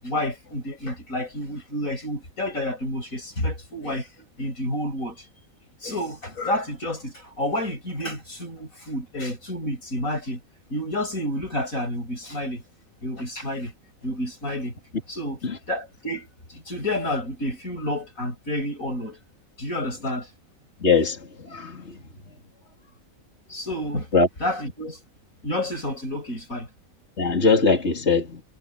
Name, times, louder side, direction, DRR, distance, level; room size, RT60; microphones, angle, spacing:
voice 1, 0.0-5.2 5.8-10.4 10.7-12.6 13.0-13.7 14.0-14.8 15.1-19.2 19.6-20.3 23.5-24.1 24.4-25.0 25.4-26.7, left 1 dB, 85° left, 8.5 m, -30 dB
voice 2, 20.8-21.9 24.1-24.3 27.2-28.4, left 4 dB, 55° left, 3.2 m, -21 dB
omnidirectional pair, 1.4 m